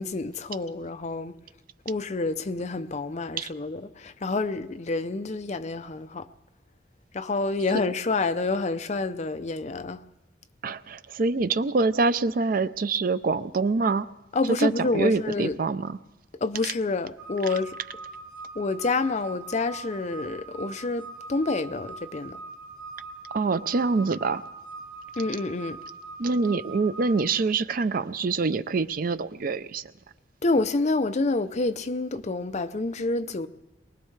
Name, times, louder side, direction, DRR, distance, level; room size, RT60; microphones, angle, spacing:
voice 1, 0.0-1.3 1.9-6.3 7.1-10.0 14.3-15.6 16.4-17.8 18.6-21.0 21.3-22.4 25.2-25.8 30.4-33.5, left 3 dB, 40° left, 0.5 m, -28 dB
voice 2, 10.6-14.1 14.6-16.0 16.6-16.7 23.3-24.4 26.2-29.9, right 4 dB, 50° right, 0.4 m, -25 dB
sound 1, 17.2-27.2, right 3 dB, 10° right, 1.8 m, -42 dB
23.0 x 19.5 x 3.2 m
head